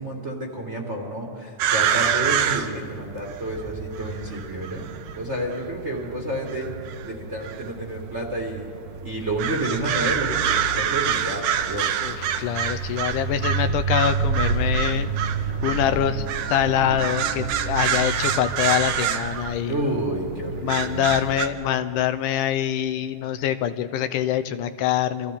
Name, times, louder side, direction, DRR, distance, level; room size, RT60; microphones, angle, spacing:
voice 1, 0.0-4.9 5.1-6.7 7.0-8.7 9.0-11.9 19.7-21.1, right 1 dB, 25° right, 0 dB, 1.6 m, -30 dB
sound 1, 1.6-21.5, right 7 dB, 75° right, 2.3 m, -26 dB
voice 2, 12.0-15.1 15.6-19.9 20.6-25.4, left 10 dB, 80° left, 10 dB, 2.2 m, -25 dB
28.5 x 24.5 x 3.7 m, 2.5 s
omnidirectional pair, 3.7 m